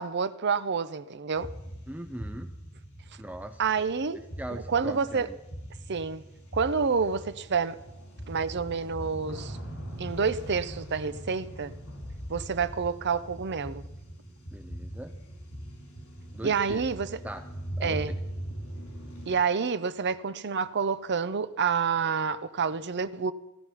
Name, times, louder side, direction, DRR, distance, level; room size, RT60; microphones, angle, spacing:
voice 1, 0.0-1.5 3.6-4.2 4.5-5.3 5.9-6.2 6.5-7.8 8.3-9.6 10.0-11.7 12.3-13.9 16.4-17.2 17.8-18.1 19.3-23.3, right 5 dB, 55° right, 0.7 m, -28 dB
sound 1, 1.3-19.3, right 1 dB, 80° left, 4.8 m, -41 dB
voice 2, 1.9-2.5 3.2-3.6 4.4-5.3 14.5-15.1 16.3-16.8 17.2-17.4 17.8-18.2, right 1 dB, 5° right, 0.5 m, -39 dB
16.5 x 12.5 x 5.8 m
head